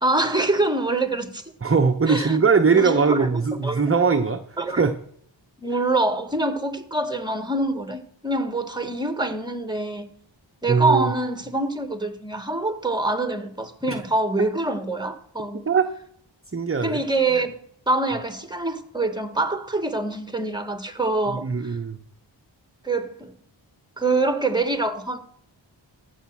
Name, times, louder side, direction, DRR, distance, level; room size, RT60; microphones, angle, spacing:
voice 1, 0.0-1.4 2.1-2.4 2.7-3.8 4.6-4.9 5.6-10.1 10.6-15.7 16.8-17.6 17.9-21.8 22.8-23.3 24.0-25.2, right 2 dB, 10° right, 1.4 m, -25 dB
voice 2, 1.6-4.9 10.7-11.1 13.9-14.0 15.7-15.8 16.5-17.0 21.3-22.0, right 5 dB, 30° right, 0.7 m, -21 dB
14.0 x 6.4 x 6.0 m
wide cardioid pair, 45°, 47 cm